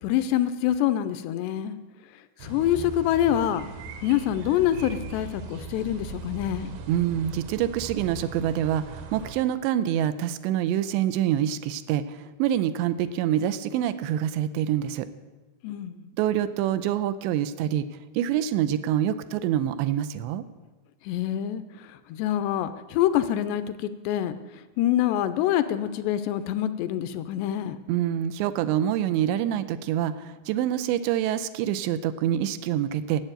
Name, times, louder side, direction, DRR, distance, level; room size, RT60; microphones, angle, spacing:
voice 1, 0.0-1.8 2.4-3.7 4.0-6.7 15.6-16.1 21.1-24.4 24.8-27.8, left 11 dB, 80° left, 12 dB, 2.6 m, -26 dB
sound 1, 2.4-9.3, right 4 dB, 70° right, 2.5 m, -39 dB
voice 2, 6.9-15.1 16.2-17.9 18.2-20.4 27.9-33.2, right 11 dB, 85° right, 13 dB, 2.8 m, -26 dB
11.5 x 8.0 x 9.0 m, 1.2 s
omnidirectional pair, 5.1 m